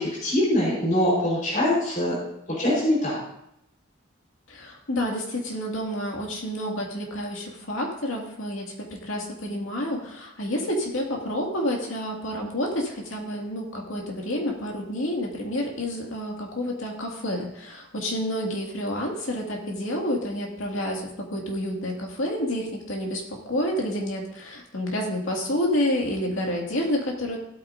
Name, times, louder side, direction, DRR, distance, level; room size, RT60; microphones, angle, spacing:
voice 1, 0.0-2.1 2.6-3.2, left 1 dB, 40° left, -6 dB, 4.4 m, -23 dB
voice 2, 4.5-27.4, left 1 dB, 75° left, 0 dB, 2.3 m, -29 dB
16.0 x 8.7 x 2.7 m, 0.80 s
head